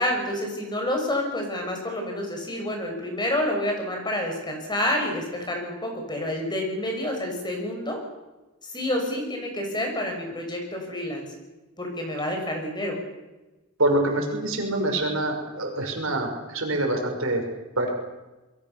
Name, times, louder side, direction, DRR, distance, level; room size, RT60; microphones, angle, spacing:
voice 1, 0.0-8.0 8.6-11.2 11.8-13.0, left 1 dB, 20° left, 2 dB, 6.3 m, -28 dB
voice 2, 13.8-17.4 17.8-17.9, right 1 dB, 65° right, 3 dB, 6.0 m, -25 dB
27.0 x 22.5 x 7.0 m, 1.1 s
head